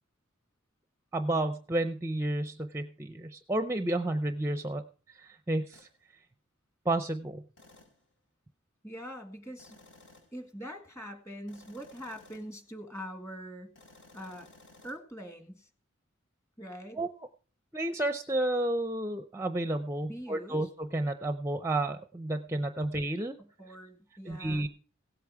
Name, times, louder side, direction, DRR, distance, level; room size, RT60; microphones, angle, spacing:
voice 1, 1.1-5.9 6.9-7.4 17.0-17.1 17.7-23.4 24.3-24.7, right 1 dB, 15° right, 8 dB, 0.5 m, -31 dB
sound 1, 5.7-5.9 7.6-8.0 9.6-10.4 11.5-12.6 13.8-15.0, left 2 dB, 70° left, 5.9 m, -57 dB
voice 2, 8.8-9.8 10.3-14.5 14.8-15.7 16.6-17.0 20.0-20.7 23.6-24.7, equal, 15° left, 5 dB, 1.7 m, -43 dB
17.0 x 8.5 x 4.6 m, 0.40 s
head